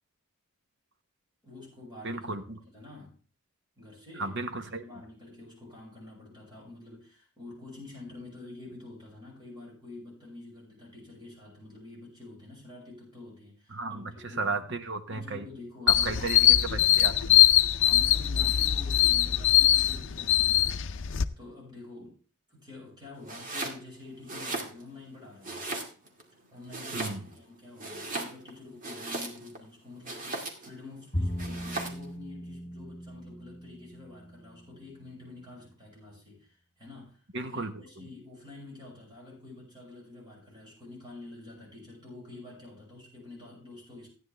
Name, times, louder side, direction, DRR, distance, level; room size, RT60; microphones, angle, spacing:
voice 1, 1.4-2.4 2.6-3.1 3.8-14.5 15.1-16.6 17.7-22.2 22.5-25.6 26.5-44.1, left 2 dB, 20° right, -3 dB, 6.2 m, -47 dB
voice 2, 2.0-2.6 4.2-4.8 13.7-14.1 14.4-15.4 15.9-16.4 16.7-17.4 26.9-27.2 37.3-38.1, right 3 dB, 55° right, 8 dB, 1.2 m, -34 dB
sound 1, 15.9-21.2, left 12 dB, 60° left, 0.6 m, -22 dB
Domestic sounds home sounds, 23.2-23.8 24.2-25.1 25.4-26.2 26.7-27.5 27.8-29.6 30.0-30.8 31.4-32.1, right 2 dB, 40° right, 2.2 m, -37 dB
Bowed string instrument, 31.1-34.5, equal, 35° left, 3.8 m, -37 dB
14.5 x 9.7 x 3.4 m, 0.37 s
head